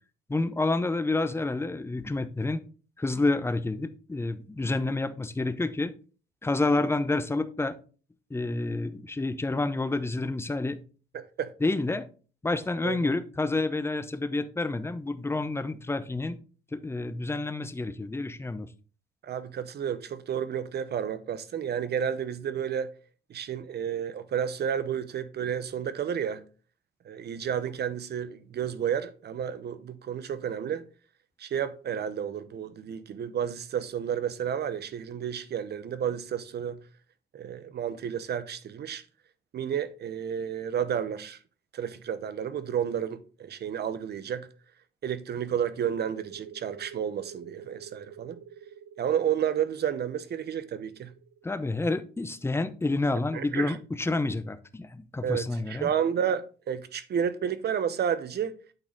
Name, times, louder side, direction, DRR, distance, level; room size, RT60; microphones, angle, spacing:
voice 1, 0.3-2.6 3.0-5.9 6.4-7.8 8.3-10.8 11.6-12.1 12.4-16.4 16.7-18.7 51.4-55.9, left 2 dB, 10° left, 0.7 m, -29 dB
voice 2, 11.1-11.5 12.8-13.0 19.2-22.9 23.3-26.4 27.0-30.8 31.4-36.8 37.3-39.0 39.5-41.4 41.7-44.5 45.0-48.4 49.0-51.1 53.3-53.8 55.2-58.5, right 8 dB, 55° right, 0.8 m, -31 dB
sound 1, 45.7-53.0, right 8 dB, 80° right, 1.0 m, -48 dB
8.9 x 4.0 x 3.9 m
cardioid pair, 90°, 20 cm